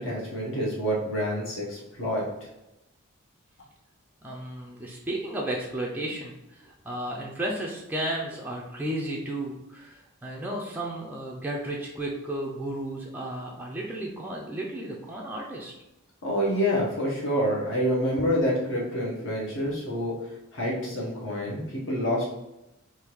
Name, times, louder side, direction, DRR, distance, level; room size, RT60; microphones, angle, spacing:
voice 1, 0.0-2.3 16.2-20.1 20.5-22.4, equal, 60° left, -4 dB, 1.1 m, -27 dB
voice 2, 4.2-15.7, right 1 dB, 10° right, -3 dB, 0.3 m, -33 dB
3.5 x 2.5 x 3.0 m, 0.93 s
head